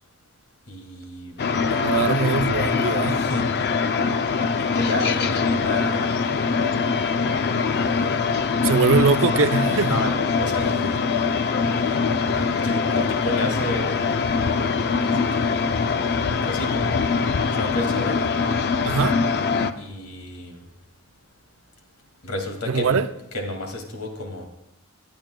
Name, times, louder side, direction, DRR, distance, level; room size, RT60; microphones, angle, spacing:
voice 1, 0.7-1.4 3.0-3.5 4.6-6.2 7.7-8.2 9.8-10.9 11.8-12.0 12.3-14.1 15.0-15.6 16.4-17.0 17.5-18.3 19.8-20.6 22.2-23.0 23.3-24.5, left 1 dB, 90° left, 2.2 m, -31 dB
sound 1, 1.4-19.7, left 5 dB, 50° left, 0.5 m, -23 dB
voice 2, 1.7-3.2 8.6-10.0 18.8-19.2 22.7-23.1, right 4 dB, 65° right, 0.6 m, -22 dB
19.5 x 10.5 x 2.2 m
head